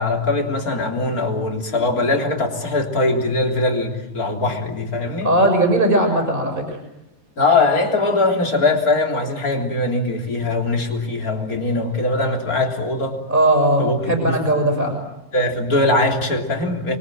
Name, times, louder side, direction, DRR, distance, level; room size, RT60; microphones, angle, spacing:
voice 1, 0.0-5.3 7.4-13.2 13.8-14.4 15.3-17.0, left 2 dB, 25° left, 2 dB, 3.5 m, -21 dB
voice 2, 5.2-6.8 13.3-15.0, right 1 dB, 15° right, 4 dB, 6.7 m, -18 dB
29.5 x 24.0 x 7.8 m, 0.93 s
omnidirectional pair, 4.3 m